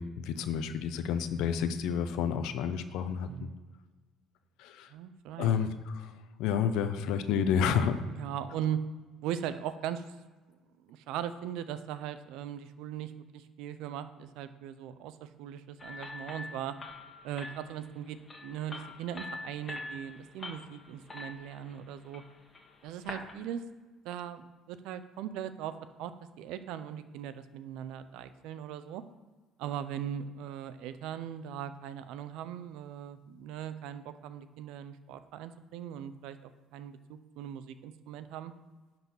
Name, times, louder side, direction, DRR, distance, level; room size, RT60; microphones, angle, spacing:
voice 1, 0.0-3.3 4.6-4.9 5.4-5.7 5.9-6.1 6.4-8.0, left 7 dB, 80° left, 10 dB, 0.8 m, -29 dB
voice 2, 4.9-5.5 8.1-8.8 9.2-10.1 10.8-16.8 17.2-22.2 22.8-23.6 24.0-25.7 26.0-26.1 26.4-29.0 29.6-38.5, right 10 dB, 80° right, 12 dB, 0.6 m, -39 dB
sound 1, 15.8-23.3, left 2 dB, 25° left, 1.6 m, -45 dB
10.5 x 4.1 x 6.1 m, 1.3 s
cardioid pair, 105°, 0 cm